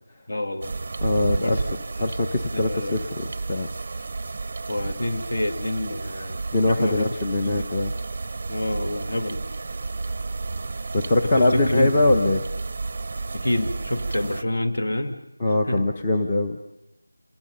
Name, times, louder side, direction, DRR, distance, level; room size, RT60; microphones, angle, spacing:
voice 1, 0.3-0.7 1.4-1.6 2.0-2.1 2.5-3.1 4.7-7.1 7.4-7.7 8.5-9.4 11.2-11.9 13.3-15.2 15.7-15.9, left 1 dB, 55° left, 6 dB, 2.4 m, -28 dB
sound 1, 0.6-14.4, right 3 dB, 30° right, 0.7 m, -32 dB
voice 2, 1.0-1.6 2.0-3.7 6.5-7.9 10.9-12.4 15.4-16.6, left 2 dB, 20° left, 3 dB, 1.0 m, -22 dB
28.5 x 19.0 x 5.5 m, 0.86 s
figure-of-eight pair, 170°, 0 cm